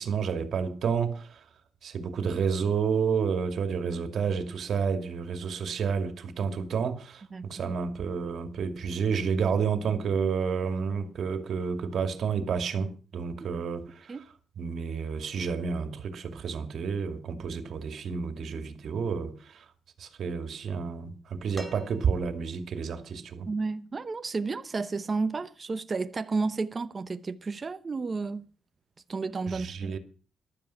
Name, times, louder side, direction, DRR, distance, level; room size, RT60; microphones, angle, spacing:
voice 1, 0.0-1.4 1.8-14.2 14.6-19.6 20.0-23.5 29.5-30.0, right 6 dB, 65° right, 2.4 m, -30 dB
sound 1, 21.5-22.6 24.1-24.2, equal, 10° left, 2.6 m, -47 dB
voice 2, 23.5-28.5 29.1-29.9, right 4 dB, 30° right, 0.8 m, -32 dB
15.0 x 12.0 x 5.7 m
cardioid pair, 110°, 0 cm